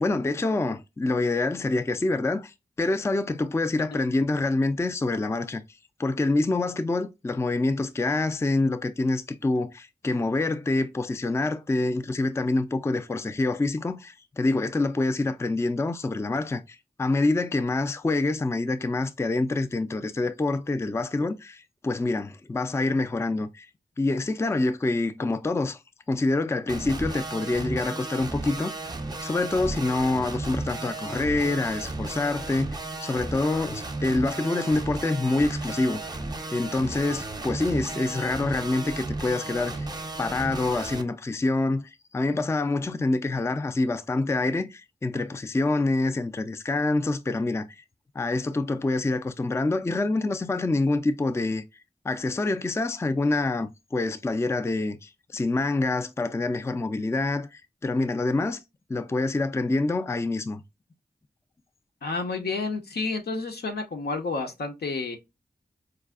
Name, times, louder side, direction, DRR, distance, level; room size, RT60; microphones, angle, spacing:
voice 1, 0.0-5.6 6.0-23.7 24.0-25.8 26.1-28.9 29.2-36.0 36.5-39.9 40.2-47.7 48.2-51.6 52.0-58.6 58.9-60.6, left 2 dB, 15° left, 0.3 m, -26 dB
sound 1, 26.7-41.0, right 2 dB, 25° right, 0.6 m, -34 dB
voice 2, 62.0-65.2, left 3 dB, 75° left, 0.8 m, -30 dB
4.7 x 2.4 x 2.3 m
wide cardioid pair, 75°, 16 cm